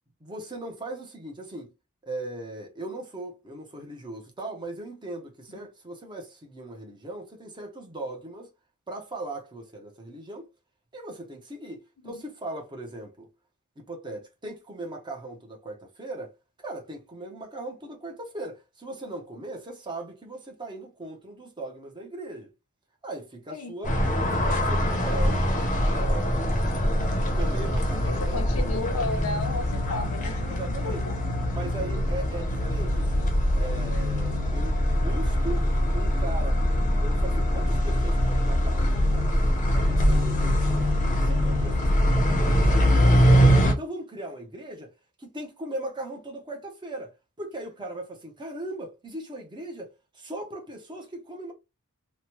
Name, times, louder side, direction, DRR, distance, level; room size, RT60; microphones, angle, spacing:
voice 1, 0.2-1.7 2.0-8.5 8.9-10.5 10.9-13.3 13.8-22.5 23.0-24.0 24.3-25.5 25.8-26.6 27.3-28.9 30.5-31.0 31.5-35.6 35.9-36.6 37.0-40.8 41.2-44.9 45.2-47.1 47.4-51.5, right 2 dB, 20° right, 0.7 m, -39 dB
sound 1, 23.8-43.7, equal, 35° left, 0.7 m, -23 dB
voice 2, 27.9-30.4 30.8-31.2, left 2 dB, 70° left, 0.6 m, -33 dB
3.0 x 2.1 x 2.9 m
head